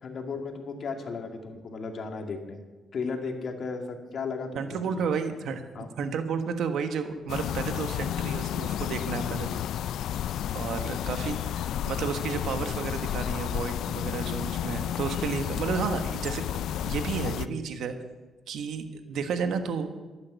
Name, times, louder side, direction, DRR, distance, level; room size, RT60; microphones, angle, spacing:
voice 1, 0.0-2.6 2.9-5.0 5.7-5.9, left 4 dB, 55° left, 4 dB, 2.2 m, -35 dB
voice 2, 4.5-5.6 6.0-9.6 10.5-18.0 18.5-19.9, right 6 dB, 75° right, 7 dB, 1.4 m, -32 dB
sound 1, 7.3-17.5, left 11 dB, 75° left, 0.4 m, -31 dB
12.0 x 10.5 x 8.1 m, 1.3 s
cardioid pair, 90°, 0 cm